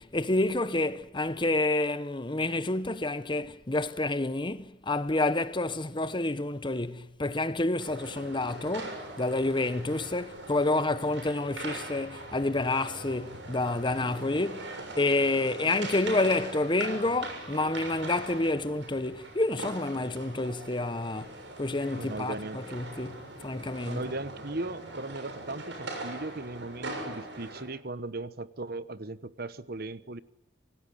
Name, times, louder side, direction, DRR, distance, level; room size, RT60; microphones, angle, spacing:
voice 1, 0.0-24.1, left 2 dB, 25° left, 1.0 m, -29 dB
sound 1, 7.8-27.6, right 2 dB, 75° right, 7.0 m, -41 dB
voice 2, 22.0-22.6 23.8-30.2, right 2 dB, 55° right, 1.1 m, -37 dB
25.5 x 18.5 x 9.9 m
head